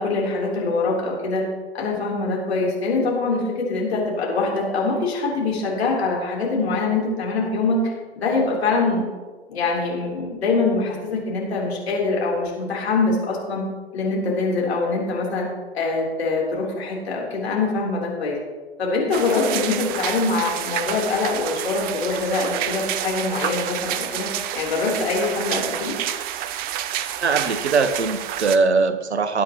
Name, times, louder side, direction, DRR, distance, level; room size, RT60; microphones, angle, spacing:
voice 1, 0.0-1.5 1.7-9.0 9.5-13.7 13.9-15.5 15.7-18.4 18.8-24.3 24.5-26.0, left 3 dB, 70° left, -3 dB, 3.6 m, -24 dB
sound 1, 19.1-28.6, right 11 dB, 30° right, 0.6 m, -29 dB
voice 2, 27.2-29.4, right 4 dB, 80° right, 11 dB, 1.0 m, -21 dB
19.5 x 8.7 x 3.0 m, 1.3 s
figure-of-eight pair, 95°, 33 cm